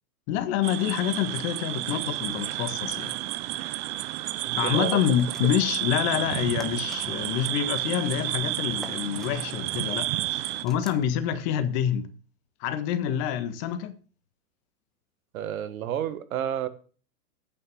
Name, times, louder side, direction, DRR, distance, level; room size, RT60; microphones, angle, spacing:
voice 1, 0.3-3.1 4.5-12.1 12.6-13.9, left 9 dB, 45° left, 1.6 m, -27 dB
sound 1, 0.6-10.7, right 16 dB, 30° right, 0.6 m, -31 dB
voice 2, 4.4-5.0 15.3-16.7, right 10 dB, 60° right, 1.4 m, -30 dB
sound 2, 5.2-5.7 6.6-7.0 8.8-9.3 10.7-11.0, equal, ahead, 1.1 m, -45 dB
9.0 x 6.8 x 7.2 m
hypercardioid pair, 110°, 46 cm